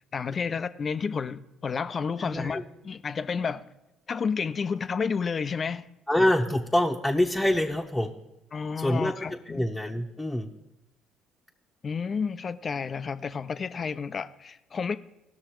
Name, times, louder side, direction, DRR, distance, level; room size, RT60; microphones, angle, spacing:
voice 1, 0.1-3.6 4.1-5.9 8.5-9.7 11.8-15.0, left 5 dB, 40° left, 0.6 m, -31 dB
voice 2, 2.2-2.6 6.1-8.1 8.8-10.5, left 1 dB, 10° left, 1.0 m, -26 dB
17.5 x 6.4 x 4.6 m
hypercardioid pair, 60°, 0 cm